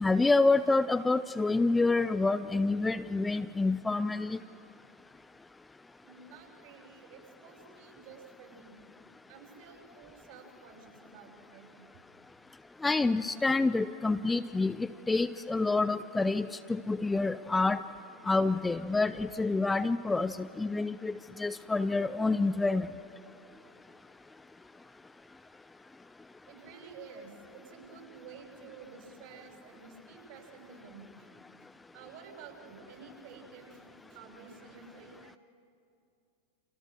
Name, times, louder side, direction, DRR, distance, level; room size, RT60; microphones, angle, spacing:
voice 1, 0.0-4.4 12.8-17.8 18.2-22.9, left 3 dB, 10° left, 12 dB, 0.6 m, -28 dB
voice 2, 6.0-8.8 9.3-11.9 26.5-31.3 31.9-35.4, right 5 dB, 50° right, 2 dB, 6.5 m, -51 dB
30.0 x 28.0 x 6.3 m, 2.5 s
figure-of-eight pair, 90°, 0 cm